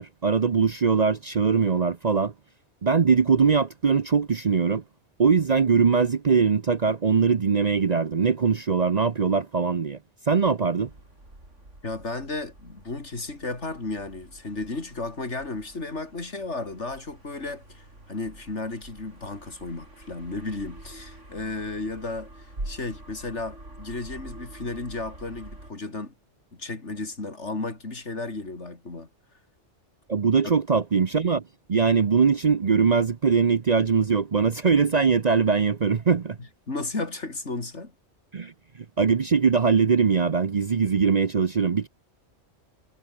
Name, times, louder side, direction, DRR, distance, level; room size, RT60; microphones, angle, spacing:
voice 1, 0.0-2.3 2.8-4.8 5.2-10.0 10.3-10.9 30.1-31.4 31.7-36.4 38.3-38.5 39.0-41.9, right 5 dB, 40° right, 0.7 m, -21 dB
sound 1, 10.8-25.7, right 1 dB, 85° right, 7.2 m, -45 dB
voice 2, 11.8-22.3 22.7-26.1 26.5-29.1 36.7-37.9, left 3 dB, 70° left, 3.8 m, -34 dB
omnidirectional pair, 1.2 m